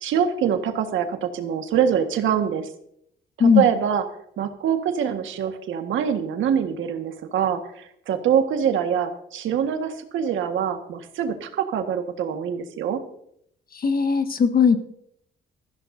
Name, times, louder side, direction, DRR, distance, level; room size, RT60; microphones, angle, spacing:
voice 1, 0.0-2.7 3.4-4.0 4.4-13.0, right 8 dB, 75° right, 6 dB, 1.6 m, -24 dB
voice 2, 13.8-14.8, left 6 dB, 50° left, 7 dB, 1.7 m, -18 dB
18.0 x 14.5 x 2.7 m, 0.71 s
cardioid pair, 90°, 20 cm